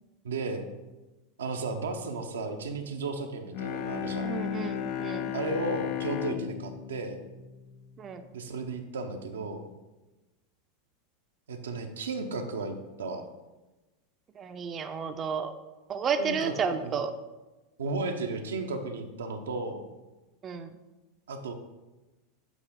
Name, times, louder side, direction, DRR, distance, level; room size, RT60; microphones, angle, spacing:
voice 1, 0.2-0.7 1.4-4.3 5.3-7.2 8.3-9.6 11.5-13.3 16.2-16.9 17.8-19.8 21.3-21.5, right 3 dB, 85° right, 5 dB, 0.7 m, -34 dB
Bowed string instrument, 3.5-8.4, left 9 dB, 55° left, 0.4 m, -35 dB
voice 2, 4.2-5.3 8.0-8.2 14.4-15.5 15.9-17.1 20.4-20.8, right 6 dB, 35° right, 7 dB, 0.5 m, -32 dB
8.3 x 3.8 x 3.6 m, 1.1 s
hypercardioid pair, 95°, 0 cm